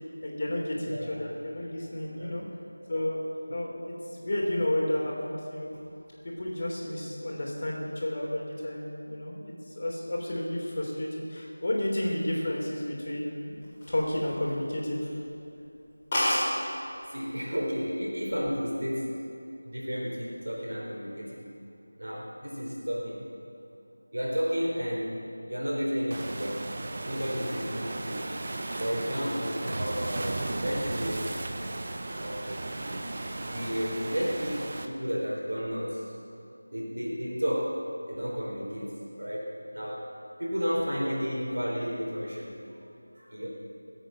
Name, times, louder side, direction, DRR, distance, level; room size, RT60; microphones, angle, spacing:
voice 1, 0.2-2.4 2.9-3.2 3.5-5.7 6.2-13.6 13.9-15.0 17.0-17.1, left 1 dB, 45° left, -2 dB, 3.3 m, -31 dB
voice 2, 0.8-1.2 2.1-2.3 3.5-3.6 17.1-19.1 19.6-21.5 22.0-23.2 24.1-25.2 25.5-26.7 27.0-28.2 28.8-31.4 32.2-32.6 33.5-36.1 36.7-40.1 40.4-42.6 43.2-43.5, equal, 75° right, -4 dB, 4.0 m, -32 dB
sound 1, 13.6-14.6 15.0-15.2 15.6-15.7 15.9-16.0 16.1-16.5 17.4-17.7 18.1-18.5, left 1 dB, 20° left, 3.9 m, -28 dB
Waves surf, 26.1-34.9, right 2 dB, 35° right, 0.9 m, -35 dB
21.0 x 8.3 x 6.4 m, 2.8 s
figure-of-eight pair, 170°, 0 cm